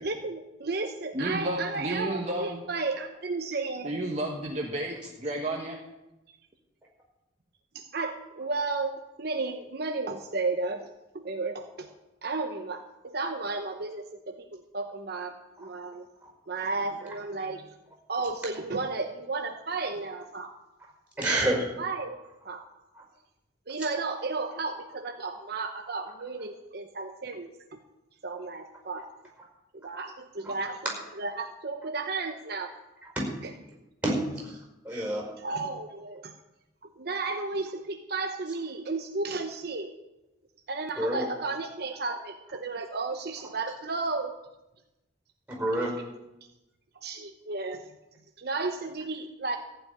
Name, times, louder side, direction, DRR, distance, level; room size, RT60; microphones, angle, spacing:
voice 1, 0.0-4.0 7.7-8.9 9.2-11.9 12.2-16.1 16.5-17.8 18.1-20.6 21.2-22.7 23.7-27.8 28.2-29.1 29.7-30.8 31.1-32.7 33.4-33.5 34.9-35.0 35.4-36.3 36.8-39.9 40.7-44.3 46.9-47.9 48.4-49.6, right 3 dB, 55° right, 5 dB, 0.9 m, -33 dB
voice 2, 1.1-2.6 3.8-5.8, right 1 dB, 35° right, -1 dB, 1.4 m, -31 dB
voice 3, 21.2-21.7 33.1-33.3 34.0-34.6 34.8-35.3 41.0-41.3 45.5-46.0, right 1 dB, 10° right, -1 dB, 5.1 m, -28 dB
15.0 x 5.9 x 9.6 m, 0.97 s
head